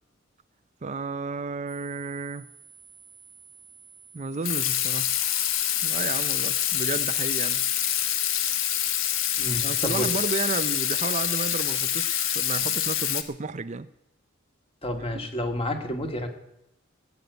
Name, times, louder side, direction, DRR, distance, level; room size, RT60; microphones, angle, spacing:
voice 1, 0.8-2.5 4.1-5.1 5.8-7.6 9.6-13.9 15.1-15.3, right 4 dB, 35° right, 12 dB, 0.5 m, -32 dB
sound 1, 1.7-12.9, right 6 dB, 60° left, 3.6 m, -52 dB
Water tap faucet / Sink (filling or washing), 4.4-13.2, left 11 dB, 80° left, 1.3 m, -26 dB
voice 2, 9.4-10.1 14.8-16.3, left 1 dB, 30° left, 5 dB, 2.1 m, -30 dB
17.5 x 8.3 x 9.3 m, 0.85 s
head